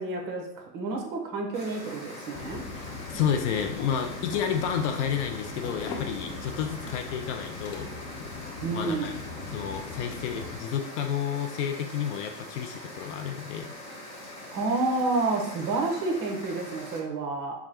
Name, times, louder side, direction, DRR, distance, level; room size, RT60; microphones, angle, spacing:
voice 1, 0.0-2.6 8.6-9.1 14.5-17.5, right 3 dB, 40° right, 1 dB, 1.1 m, -29 dB
sound 1, 1.5-17.0, left 1 dB, 10° left, 1.4 m, -43 dB
sound 2, 2.3-10.6, left 4 dB, 70° left, 1.1 m, -40 dB
voice 2, 3.1-7.9 8.7-9.1 9.5-13.7, left 8 dB, 45° left, 5 dB, 0.5 m, -30 dB
4.6 x 2.3 x 4.3 m, 0.77 s
hypercardioid pair, 115°, 49 cm